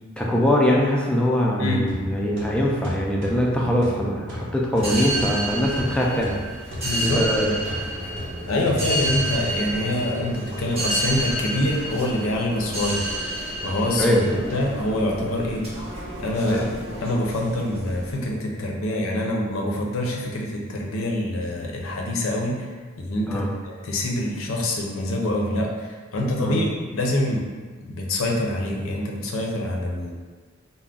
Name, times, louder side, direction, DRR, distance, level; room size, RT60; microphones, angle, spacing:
voice 1, 0.2-6.4 7.0-7.5 13.9-14.4 16.4-16.7 23.3-23.5 26.4-26.6, equal, 5° left, -3 dB, 0.3 m, -22 dB
sound 1, 1.9-9.6, left 1 dB, 65° right, 0.8 m, -37 dB
sound 2, 4.7-18.2, right 1 dB, 30° right, 0.7 m, -30 dB
voice 2, 6.8-7.2 8.4-13.0 13.6-14.1 14.5-15.7 16.2-16.6 17.0-22.7 23.0-27.4 27.8-30.1, left 1 dB, 85° left, 0 dB, 0.5 m, -25 dB
2.3 x 2.0 x 3.6 m, 1.4 s
head